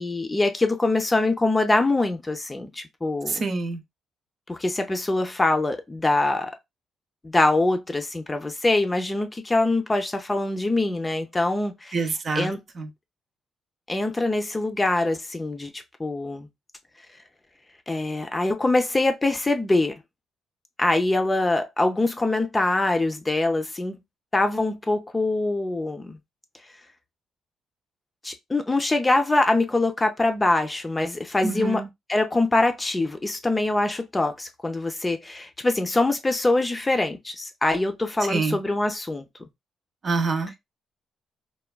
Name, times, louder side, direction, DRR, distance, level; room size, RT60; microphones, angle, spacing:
voice 1, 0.0-3.4 4.5-6.5 7.2-11.9 12.3-12.6 13.9-16.5 17.9-19.9 20.8-23.9 24.3-26.2 28.2-31.8 32.1-39.2, left 2 dB, 20° left, 0.5 m, -24 dB
voice 2, 3.3-3.8 11.9-12.9 31.4-31.9 38.3-38.6 40.0-40.5, right 4 dB, 45° right, 0.6 m, -26 dB
3.3 x 2.3 x 2.2 m
cardioid pair, 90°, 0 cm